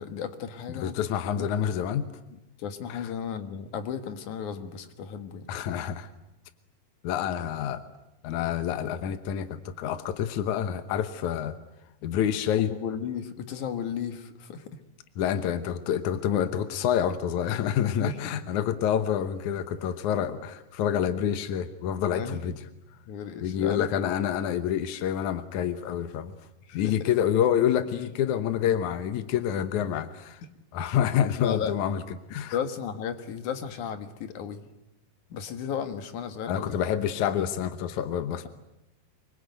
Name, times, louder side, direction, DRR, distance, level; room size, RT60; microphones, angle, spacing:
voice 1, 0.0-1.0 1.4-1.5 2.6-5.5 12.6-14.8 17.9-18.4 22.1-22.4 23.1-24.1 26.6-27.1 31.4-31.8 32.5-34.7 35.3-36.8 37.4-37.5, left 7 dB, 55° left, 9 dB, 2.5 m, -34 dB
voice 2, 0.7-2.1 2.9-3.0 5.5-6.1 7.0-7.8 8.2-11.6 12.0-12.7 15.2-22.6 23.4-26.4 26.7-30.4 30.7-32.0 32.3-32.6 36.5-38.5, left 9 dB, 75° left, 10 dB, 1.8 m, -27 dB
25.0 x 22.5 x 9.3 m, 0.92 s
omnidirectional pair, 4.9 m